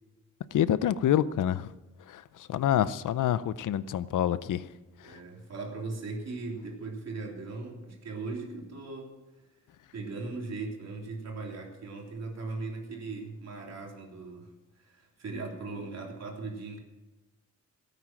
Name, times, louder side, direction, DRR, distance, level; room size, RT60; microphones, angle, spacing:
voice 1, 0.5-1.7 2.1-2.2 2.5-4.6 5.0-5.2, left 10 dB, 90° left, 16 dB, 0.7 m, -27 dB
voice 2, 5.0-9.1 9.4-9.5 9.9-14.5 14.8-16.8, right 3 dB, 60° right, 0 dB, 3.5 m, -38 dB
17.0 x 9.4 x 6.0 m, 1.1 s
wide cardioid pair, 135°, 30 cm